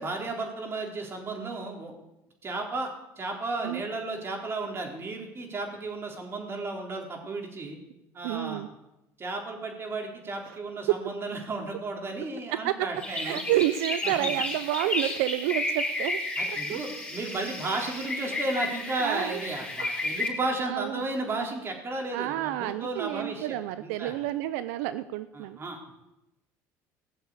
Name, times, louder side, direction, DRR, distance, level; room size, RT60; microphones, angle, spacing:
voice 1, 0.0-1.9 2.4-7.8 8.1-8.6 9.2-13.4 14.0-14.3 16.4-23.5 23.8-24.2 25.3-25.9, right 2 dB, 35° right, 1 dB, 3.9 m, -34 dB
voice 2, 8.2-8.7 10.5-10.6 12.5-16.2 16.7-16.8 17.4-17.5 18.3-18.4 19.0-19.4 20.0-20.1 20.7-21.0 22.1-25.6, right 14 dB, 85° right, 13 dB, 0.5 m, -30 dB
sound 1, 13.0-20.3, left 2 dB, 15° left, 5.0 m, -32 dB
17.5 x 7.2 x 8.5 m, 0.93 s
supercardioid pair, 100°, 7 cm